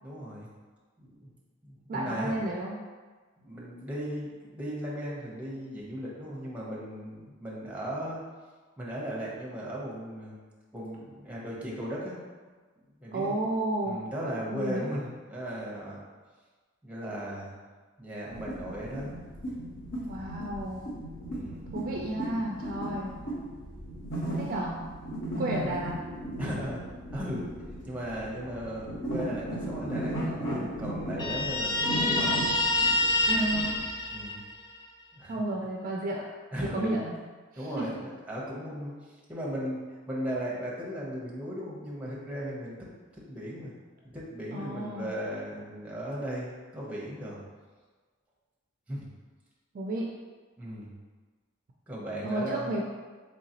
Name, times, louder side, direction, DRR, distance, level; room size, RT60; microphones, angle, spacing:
voice 1, 0.0-0.5 1.0-1.3 1.6-2.4 3.4-8.2 8.8-10.4 10.7-12.2 13.0-13.4 13.8-16.0 16.8-17.5 18.0-19.1 21.3-21.6 25.6-25.8 26.4-26.8 27.1-27.5 27.8-32.5 34.1-34.4 35.1-35.4 36.5-37.0 37.6-39.8 40.1-42.8 43.1-43.7 44.1-47.4 48.9-49.1 50.6-50.9 51.9-52.7, equal, 5° right, -5 dB, 0.8 m, -37 dB
voice 2, 1.9-2.8 13.1-14.0 14.5-14.9 20.1-20.8 21.7-23.1 24.3-24.9 25.4-26.1 33.3-33.8 35.3-36.3 36.6-37.2 37.5-37.9 44.5-45.1 49.7-50.1 52.2-52.8, right 1 dB, 45° right, -1 dB, 0.3 m, -32 dB
sound 1, 18.3-33.8, right 1 dB, 65° left, 0.9 m, -36 dB
Guitar, 31.2-34.8, left 2 dB, 20° left, 0.4 m, -27 dB
3.8 x 3.3 x 2.8 m, 1.4 s
head